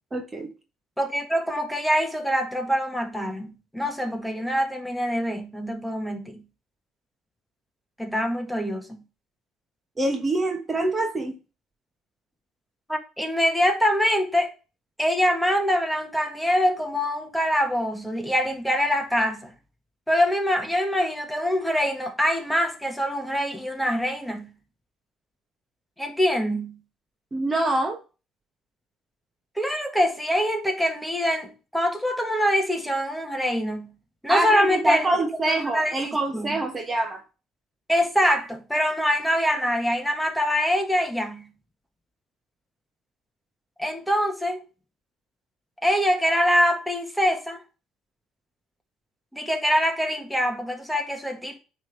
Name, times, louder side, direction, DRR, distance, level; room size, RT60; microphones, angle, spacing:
voice 1, 0.1-0.5 10.0-11.3 27.3-28.0 34.3-37.2, right 2 dB, 25° right, 1.2 m, -25 dB
voice 2, 1.0-3.5 3.7-6.4 8.0-8.9 12.9-14.5 15.0-19.5 20.1-24.5 26.0-26.8 29.6-33.9 34.2-36.6 37.9-41.5 43.8-44.6 45.8-47.6 49.3-51.6, equal, 5° left, 1.5 m, -24 dB
9.0 x 3.5 x 3.4 m
supercardioid pair, 75°, 0 cm